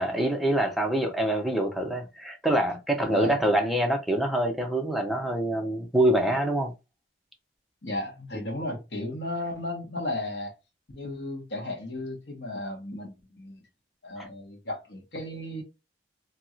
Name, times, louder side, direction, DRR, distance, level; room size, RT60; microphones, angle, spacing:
voice 1, 0.0-6.7 14.2-14.3, right 1 dB, ahead, 0.6 m, -25 dB
voice 2, 7.8-10.5 10.9-13.6 14.0-15.6, left 1 dB, 65° left, 1.2 m, -34 dB
2.9 x 2.8 x 2.4 m
head